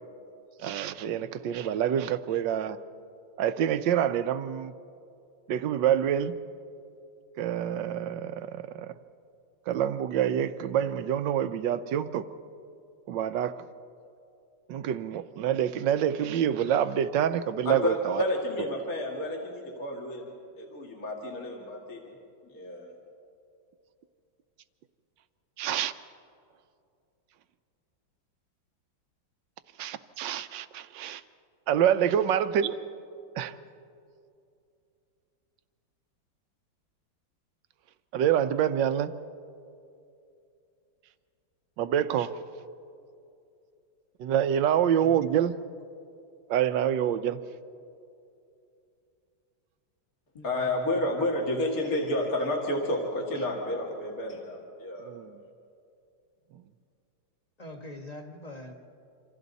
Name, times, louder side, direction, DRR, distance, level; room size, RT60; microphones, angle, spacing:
voice 1, 0.6-2.8 3.4-4.7 5.5-6.4 7.4-8.9 9.7-12.3 13.1-13.5 14.7-18.2 25.6-25.9 29.8-31.2 31.7-32.8 33.4-33.5 38.1-39.1 41.8-42.3 44.2-45.5 46.5-47.4 55.0-55.4, right 9 dB, 75° right, 12 dB, 1.4 m, -27 dB
voice 2, 17.6-22.1 22.4-22.9 50.4-55.1, left 1 dB, 45° left, -1 dB, 2.7 m, -30 dB
voice 3, 44.8-45.3 50.3-51.1 53.3-53.5 57.6-58.7, left 1 dB, 20° left, 3 dB, 1.6 m, -44 dB
28.0 x 26.0 x 4.1 m, 2.6 s
omnidirectional pair, 2.1 m